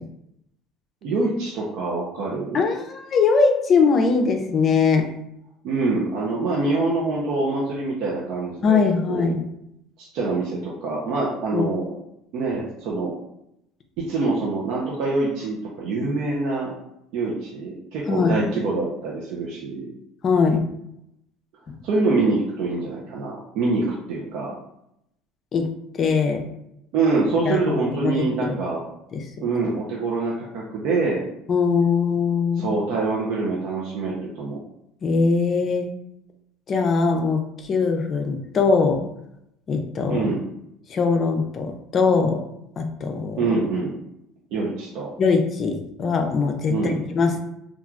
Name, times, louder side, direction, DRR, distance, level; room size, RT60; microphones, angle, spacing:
voice 1, 1.0-2.6 5.6-9.3 10.0-12.0 12.3-13.2 14.0-16.7 17.1-19.9 21.8-24.6 26.9-28.8 29.4-31.2 32.6-34.6 40.1-40.4 43.4-44.0 44.5-45.1 46.7-47.0, right 3 dB, 65° right, -5 dB, 0.6 m, -25 dB
voice 2, 2.5-5.1 8.6-9.4 11.5-11.6 18.1-18.4 20.2-20.6 25.5-25.7 26.0-26.4 27.5-27.6 28.0-28.6 29.1-29.2 31.5-32.7 35.0-35.9 36.7-37.4 37.7-39.0 39.7-40.3 40.9-42.4 42.8-43.4 45.2-47.4, left 5 dB, 40° left, 4 dB, 0.5 m, -21 dB
3.1 x 2.4 x 2.4 m, 0.79 s
supercardioid pair, 100°, 0 cm